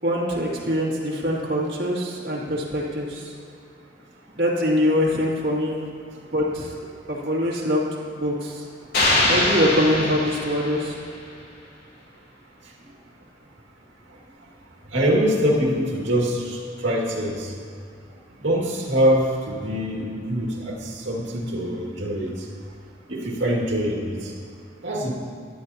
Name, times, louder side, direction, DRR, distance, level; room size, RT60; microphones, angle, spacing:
voice 1, 0.0-3.3 4.3-5.8 6.3-6.7 7.1-7.8 8.1-8.6 9.3-10.9, equal, 55° right, -4 dB, 2.3 m, -23 dB
sound 1, 8.9-11.1, left 1 dB, 60° left, 2.4 m, -23 dB
voice 2, 14.9-17.5 18.4-22.3 23.1-24.3 24.8-25.1, equal, 80° right, -1 dB, 2.1 m, -24 dB
16.5 x 11.0 x 2.8 m, 2.3 s
head